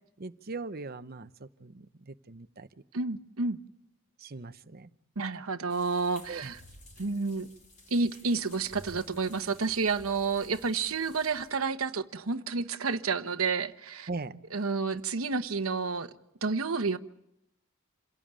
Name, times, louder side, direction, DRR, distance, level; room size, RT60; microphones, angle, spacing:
voice 1, 0.2-2.7 4.2-4.9 6.3-6.5 14.1-14.4, right 3 dB, 45° right, 0.8 m, -40 dB
voice 2, 2.9-3.6 5.2-6.6 7.0-7.5 7.9-14.1 14.5-16.1 16.4-17.0, right 4 dB, 90° right, 1.1 m, -30 dB
sound 1, 5.7-11.7, left 1 dB, 40° left, 5.2 m, -54 dB
27.5 x 17.5 x 8.9 m
head